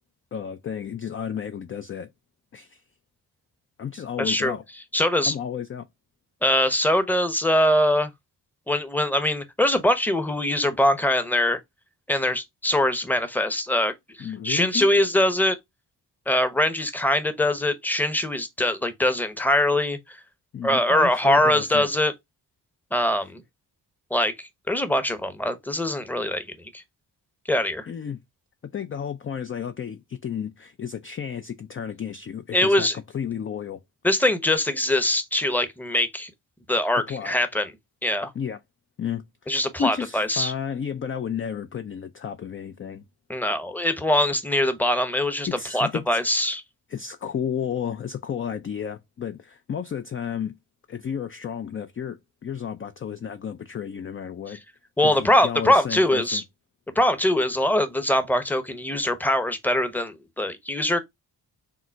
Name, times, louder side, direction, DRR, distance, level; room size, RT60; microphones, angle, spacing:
voice 1, 0.3-2.1 2.5-2.8 3.8-4.6 5.2-5.9 14.2-14.9 20.5-21.9 27.9-28.2 28.7-33.8 37.1-37.3 38.3-38.6 39.0-43.0 45.5-46.2 46.9-50.5 50.9-54.6 55.0-56.4, left 8 dB, 30° left, 0.4 m, -32 dB
voice 2, 4.2-4.5 4.9-5.3 6.4-8.1 8.7-11.6 12.1-15.6 16.3-20.2 20.6-22.1 22.9-23.4 24.1-26.4 26.7-26.8 27.5-27.9 32.5-33.0 34.0-36.3 36.7-37.7 38.0-38.3 39.5-40.5 43.3-45.5 45.7-46.6 55.0-56.4 56.9-61.0, left 1 dB, 5° left, 0.8 m, -22 dB
3.7 x 2.1 x 4.4 m
supercardioid pair, 45°, 45 cm